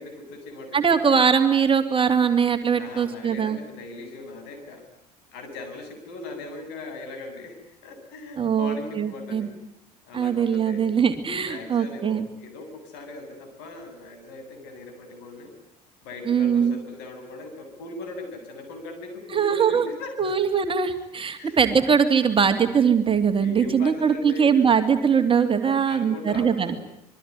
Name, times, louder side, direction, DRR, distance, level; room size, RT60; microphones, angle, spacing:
voice 1, 0.0-1.0 2.8-4.8 5.3-7.6 7.8-9.5 10.1-10.9 11.4-15.5 16.0-20.2 21.4-21.5 23.4-24.7 25.9-26.8, left 2 dB, 55° left, 5 dB, 8.0 m, -39 dB
voice 2, 0.7-3.6 8.4-9.5 10.1-12.3 16.3-16.8 19.3-19.8 20.2-26.8, right 6 dB, 25° right, 7 dB, 2.7 m, -21 dB
27.5 x 22.5 x 9.6 m, 0.78 s
figure-of-eight pair, 65°, 21 cm